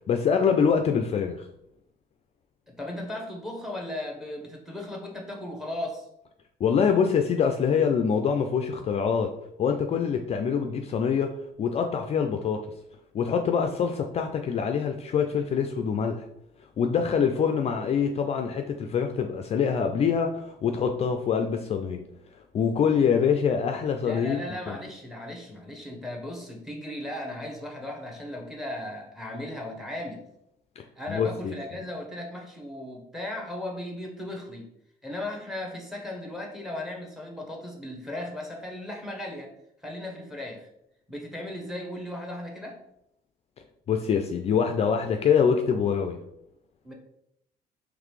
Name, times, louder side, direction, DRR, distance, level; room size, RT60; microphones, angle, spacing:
voice 1, 0.1-1.5 6.6-9.3 9.6-11.3 11.6-12.6 13.1-16.2 16.8-22.0 22.5-24.4 24.7-24.8 30.8-31.5 43.9-46.2, left 6 dB, 40° left, 5 dB, 0.3 m, -25 dB
voice 2, 2.7-6.1 24.0-30.2 31.0-34.7 35.0-39.5 39.8-40.7 41.1-42.8 46.8-46.9, left 1 dB, ahead, 1 dB, 0.9 m, -36 dB
3.9 x 3.1 x 3.2 m, 0.78 s
cardioid pair, 110°, 17 cm